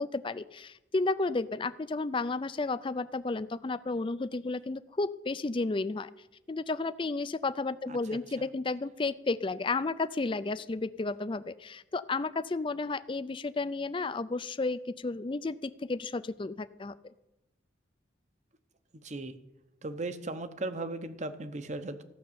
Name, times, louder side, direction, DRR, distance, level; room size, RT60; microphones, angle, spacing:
voice 1, 0.0-6.1 6.5-16.9, left 3 dB, 25° left, 15 dB, 0.4 m, -32 dB
voice 2, 7.9-8.5 18.9-19.3 19.8-22.0, right 2 dB, 35° right, 11 dB, 0.8 m, -37 dB
14.5 x 6.5 x 8.6 m, 0.93 s
head